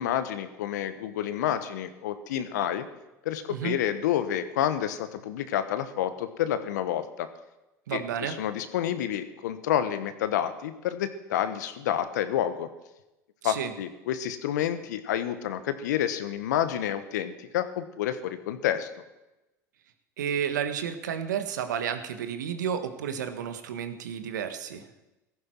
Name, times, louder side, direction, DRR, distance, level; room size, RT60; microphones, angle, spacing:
voice 1, 0.0-2.8 3.2-7.3 7.9-12.7 13.4-18.9, left 10 dB, 75° left, 11 dB, 1.3 m, -29 dB
voice 2, 7.9-8.4 13.4-13.7 20.2-24.9, right 8 dB, 80° right, 8 dB, 1.4 m, -31 dB
16.5 x 14.5 x 4.6 m, 0.99 s
hypercardioid pair, 75°, 10 cm